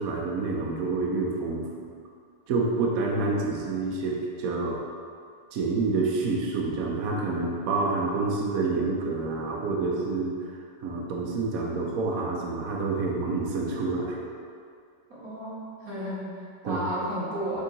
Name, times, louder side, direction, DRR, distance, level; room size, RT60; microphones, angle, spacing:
voice 1, 0.0-1.7 2.5-4.8 5.5-10.5 10.8-14.3 16.6-16.8, right 3 dB, 80° right, -2 dB, 0.7 m, -28 dB
voice 2, 15.1-17.6, equal, 45° right, -9 dB, 1.9 m, -33 dB
6.5 x 3.7 x 3.9 m, 2.2 s
omnidirectional pair, 2.3 m